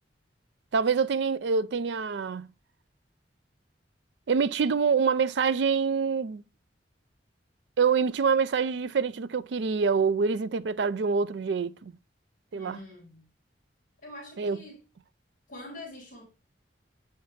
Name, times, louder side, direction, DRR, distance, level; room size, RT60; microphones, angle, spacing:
voice 1, 0.7-2.5 4.3-6.4 7.8-11.9 12.5-12.8 14.4-14.6, right 5 dB, 70° right, 0.4 m, -26 dB
voice 2, 12.5-13.3 14.0-14.8 15.5-16.2, left 2 dB, 50° left, 3.4 m, -44 dB
7.7 x 5.6 x 3.2 m
head